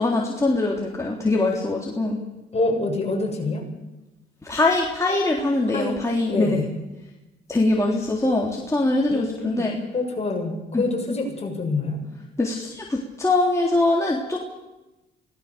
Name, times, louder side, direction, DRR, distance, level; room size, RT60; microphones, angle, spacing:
voice 1, 0.0-2.2 4.4-6.6 7.5-9.7 10.7-10.9 12.4-14.6, left 2 dB, 15° left, -2 dB, 3.6 m, -22 dB
voice 2, 2.5-3.7 5.7-6.7 9.1-12.0, left 2 dB, 30° left, 1 dB, 6.9 m, -27 dB
25.0 x 18.5 x 7.0 m, 1.0 s
cardioid pair, 90°, 20 cm